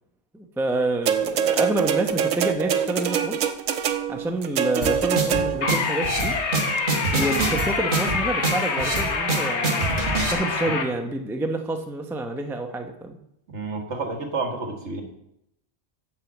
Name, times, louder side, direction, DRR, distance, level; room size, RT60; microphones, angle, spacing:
voice 1, 0.3-3.3 4.1-6.4 7.1-9.8 10.3-13.2, right 2 dB, ahead, 4 dB, 0.6 m, -28 dB
sound 1, 1.1-5.8 6.8-6.9, right 7 dB, 85° right, 1.2 m, -24 dB
sound 2, 4.8-10.3, right 4 dB, 40° right, 1.5 m, -26 dB
sound 3, 5.6-10.8, left 4 dB, 60° left, 1.3 m, -26 dB
voice 2, 13.5-15.0, right 3 dB, 60° right, 4 dB, 1.7 m, -30 dB
8.9 x 5.6 x 7.2 m, 0.81 s
omnidirectional pair, 1.4 m